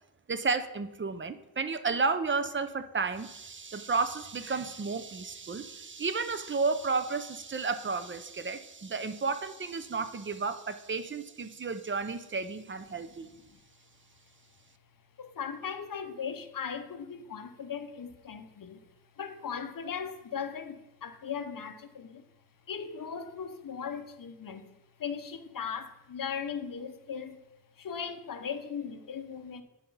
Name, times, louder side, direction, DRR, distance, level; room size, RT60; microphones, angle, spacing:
voice 1, 0.3-13.3, right 4 dB, 30° right, 0.5 m, -32 dB
voice 2, 12.9-13.6 15.2-18.9 19.1-22.2 22.7-27.4 27.8-29.6, left 7 dB, 55° left, 0.7 m, -38 dB
9.0 x 4.2 x 5.4 m
wide cardioid pair, 135°, 40 cm